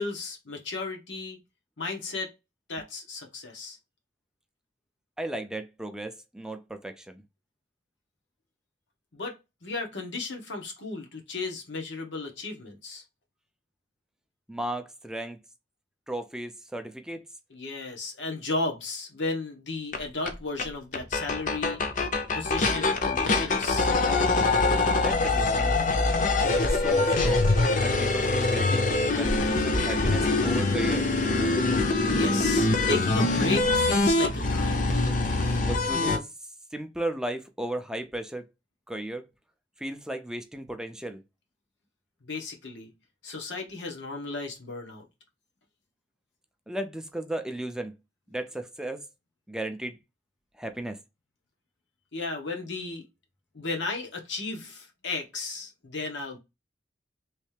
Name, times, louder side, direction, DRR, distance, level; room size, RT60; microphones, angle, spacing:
voice 1, 0.0-1.4 1.8-2.3 2.7-3.8 9.1-13.0 17.5-21.8 22.3-23.9 32.1-34.9 42.2-42.9 43.2-45.0 52.1-53.1 53.5-56.4, left 3 dB, 90° left, 1.2 m, -34 dB
voice 2, 5.2-7.2 14.5-15.4 16.1-17.2 25.0-25.9 26.6-27.5 27.8-28.9 29.1-31.1 35.7-36.3 36.7-38.5 38.9-39.2 39.8-41.2 46.7-47.9 48.3-49.0 49.5-50.0 50.6-51.0, right 1 dB, 5° right, 0.4 m, -35 dB
sound 1, 19.9-20.0 20.3-20.4 20.6-20.7 20.9-36.2, left 2 dB, 45° left, 0.6 m, -24 dB
3.2 x 3.2 x 3.3 m
head